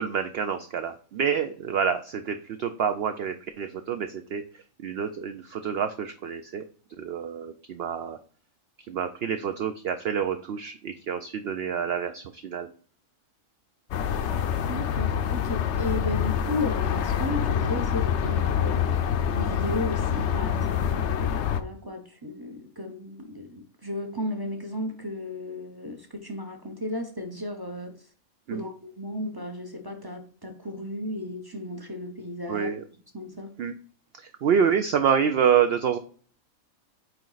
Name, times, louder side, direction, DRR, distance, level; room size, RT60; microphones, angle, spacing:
voice 1, 0.0-6.6 7.0-8.2 8.9-12.7 28.5-28.7 32.5-32.8 33.6-33.7 34.1-36.0, right 7 dB, 65° right, 0.6 m, -27 dB
sound 1, 13.9-21.6, left 8 dB, 65° left, 0.8 m, -26 dB
voice 2, 14.5-19.0 19.3-28.1 28.5-32.7 33.1-33.5, left 1 dB, 25° right, 0.6 m, -34 dB
8.8 x 3.2 x 3.9 m
omnidirectional pair, 1.4 m